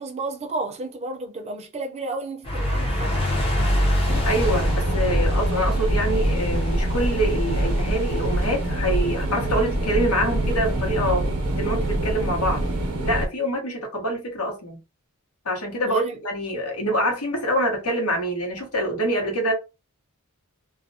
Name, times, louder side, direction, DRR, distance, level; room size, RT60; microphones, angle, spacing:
voice 1, 0.0-3.2 15.8-16.2, right 2 dB, 30° right, 0.5 m, -32 dB
sound 1, 2.4-12.9, equal, 25° left, 0.5 m, -27 dB
sound 2, 4.1-13.3, right 1 dB, 80° right, 0.6 m, -25 dB
voice 2, 4.2-11.2 11.5-12.6 13.0-14.8 15.4-19.5, equal, 80° left, 1.0 m, -25 dB
2.4 x 2.0 x 2.6 m
head